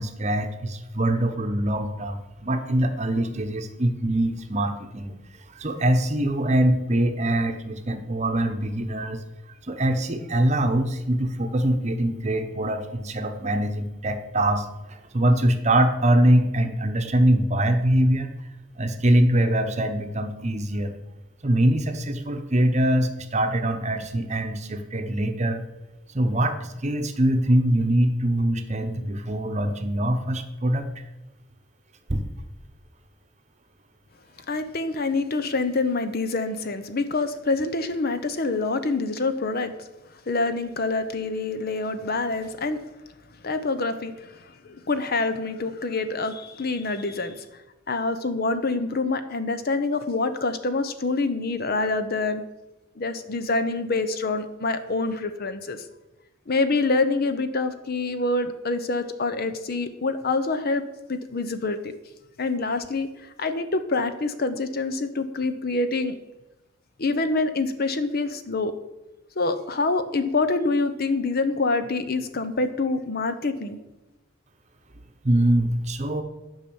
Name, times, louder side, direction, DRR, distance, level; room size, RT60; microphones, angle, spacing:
voice 1, 0.0-5.1 5.5-9.2 9.7-18.3 18.8-20.9 21.4-25.6 26.1-30.9 32.1-32.2 75.2-76.2, right 1 dB, 35° right, 7 dB, 0.9 m, -23 dB
voice 2, 34.5-39.7 40.3-42.8 43.4-47.5 47.9-52.4 53.0-55.8 56.5-60.8 61.1-61.8 62.4-63.1 63.4-66.1 67.0-68.7 69.4-73.8, left 3 dB, 50° left, 11 dB, 0.8 m, -26 dB
10.5 x 5.6 x 7.1 m, 1.0 s
head